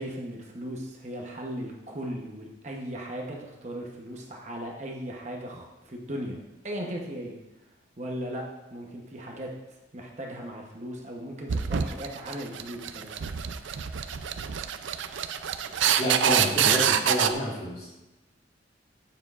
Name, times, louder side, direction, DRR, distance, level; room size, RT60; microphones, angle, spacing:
voice 1, 0.0-6.4 6.6-7.3 8.0-9.5 9.9-13.1, equal, 40° right, 0 dB, 0.9 m, -37 dB
sound 1, 11.5-17.3, right 8 dB, 80° right, 0.4 m, -26 dB
voice 2, 16.0-17.9, equal, 35° left, -6 dB, 2.3 m, -29 dB
9.7 x 7.4 x 2.4 m, 1.0 s
head